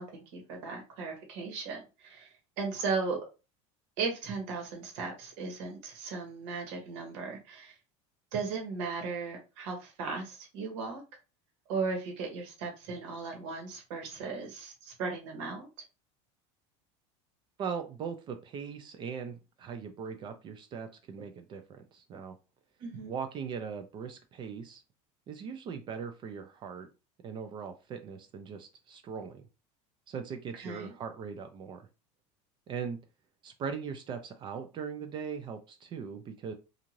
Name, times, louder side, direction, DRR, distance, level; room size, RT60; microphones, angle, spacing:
voice 1, 0.0-2.3 2.6-3.2 4.0-7.7 8.3-11.0 11.7-15.7 22.8-23.1 30.6-30.9, right 4 dB, 75° right, 1 dB, 1.2 m, -36 dB
voice 2, 17.6-22.3 23.1-24.8 25.3-26.9 27.2-29.4 30.1-31.9 32.7-33.0 33.4-36.5, right 6 dB, 30° right, 7 dB, 0.3 m, -40 dB
2.6 x 2.4 x 3.0 m, 0.30 s
cardioid pair, 145°, 15 cm